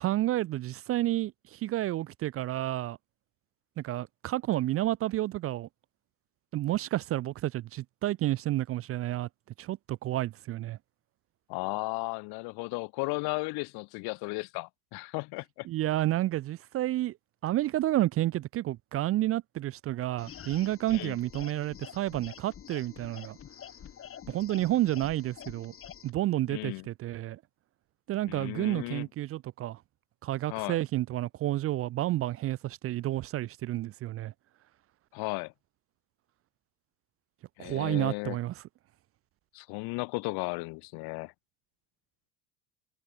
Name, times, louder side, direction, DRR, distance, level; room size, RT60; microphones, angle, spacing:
voice 1, 0.0-3.0 3.8-5.7 6.5-9.3 9.6-10.8 15.6-17.2 17.4-23.4 24.3-25.7 26.0-27.4 28.1-29.8 30.2-34.3 37.6-38.6, right 15 dB, 35° right, 0.5 m, -30 dB
voice 2, 11.5-15.7 20.9-21.2 26.5-26.8 28.3-29.0 30.5-30.8 35.1-35.5 37.6-38.4 39.5-41.3, left 28 dB, 65° left, 1.4 m, -35 dB
sound 1, 20.2-26.1, left 9 dB, 30° left, 3.2 m, -47 dB
cardioid pair, 135°, 41 cm